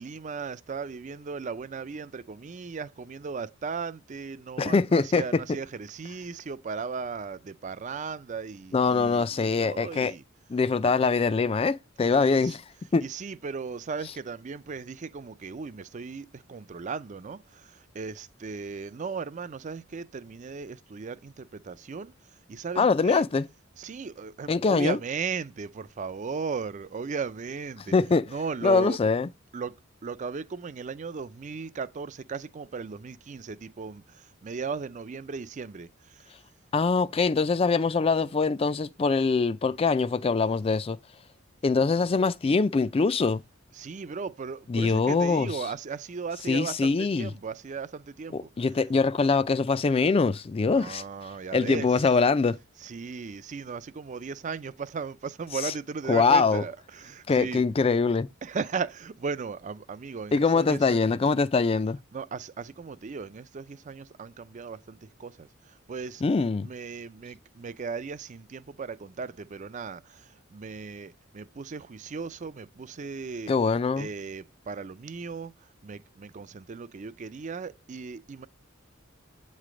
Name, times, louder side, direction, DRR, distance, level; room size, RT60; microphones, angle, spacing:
voice 1, 0.0-10.2 12.3-12.6 13.0-17.4 17.9-22.1 22.5-23.3 23.8-27.9 28.3-29.0 29.5-29.7 30.0-34.0 34.4-35.9 43.7-48.5 50.7-52.1 52.8-57.6 58.4-61.2 62.1-65.5 65.9-66.2 66.6-70.2 70.5-73.5 74.0-75.5 75.8-78.5, right 5 dB, 35° right, 0.4 m, -36 dB
voice 2, 4.6-5.2 8.7-10.1 10.5-12.6 12.9-13.0 22.8-23.5 24.5-25.0 27.9-28.3 28.6-29.3 36.7-41.0 41.6-43.4 44.7-45.5 46.5-47.3 48.3-51.0 51.5-52.6 56.1-56.6 57.3-58.3 60.3-62.0 66.2-66.7 73.5-74.1, left 4 dB, 30° left, 0.3 m, -23 dB
8.3 x 3.2 x 5.0 m
head